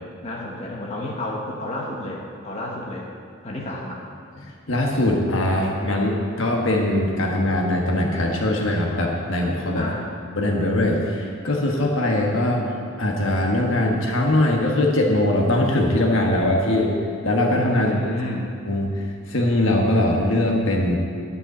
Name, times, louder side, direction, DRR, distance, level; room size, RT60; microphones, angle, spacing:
voice 1, 0.0-3.1 3.4-4.0 9.7-10.1 17.7-18.5, left 1 dB, 30° left, -3 dB, 1.1 m, -31 dB
voice 2, 4.7-9.8 10.4-16.9 17.2-18.1 18.7-21.0, left 1 dB, 60° left, 0 dB, 1.3 m, -21 dB
9.9 x 5.5 x 8.0 m, 2.3 s
head